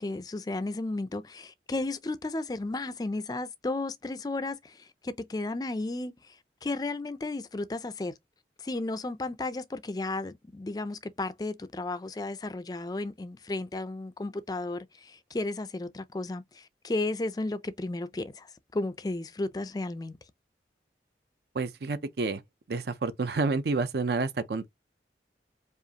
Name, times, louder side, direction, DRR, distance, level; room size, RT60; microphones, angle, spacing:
voice 1, 0.0-8.2 8.6-20.2, left 2 dB, 20° left, 0.3 m, -34 dB
voice 2, 21.5-22.4 22.7-24.7, right 3 dB, 65° right, 0.5 m, -29 dB
4.9 x 2.4 x 2.8 m
head